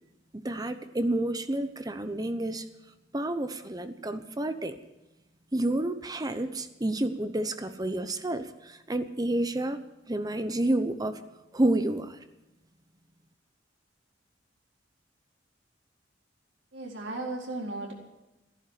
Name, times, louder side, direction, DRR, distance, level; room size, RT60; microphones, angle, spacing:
voice 1, 0.3-2.6 3.1-4.8 5.5-9.8 10.1-11.2 11.5-12.2, right 1 dB, 20° right, 10 dB, 0.9 m, -29 dB
voice 2, 16.7-17.9, right 2 dB, 80° right, -1 dB, 4.2 m, -35 dB
14.5 x 11.0 x 8.4 m, 0.99 s
head